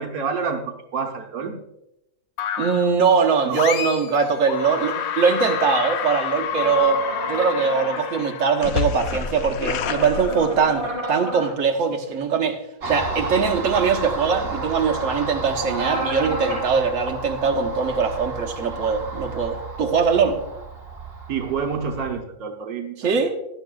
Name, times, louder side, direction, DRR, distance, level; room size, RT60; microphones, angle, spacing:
voice 1, 0.0-1.5 3.4-3.6 21.3-23.3, right 6 dB, 75° right, 2 dB, 1.4 m, -28 dB
sound 1, 2.4-2.9 3.5-4.2 4.5-10.9, left 7 dB, 75° left, 1.1 m, -28 dB
voice 2, 2.6-20.4 23.0-23.4, right 5 dB, 60° right, 1 dB, 1.4 m, -22 dB
sound 2, 6.5-8.0 9.7-11.5 15.6-16.7, equal, 20° right, 4.7 m, -30 dB
Car passing by, 12.8-22.2, right 3 dB, 40° right, 1.5 m, -32 dB
16.0 x 11.5 x 2.3 m, 0.87 s
omnidirectional pair, 1.6 m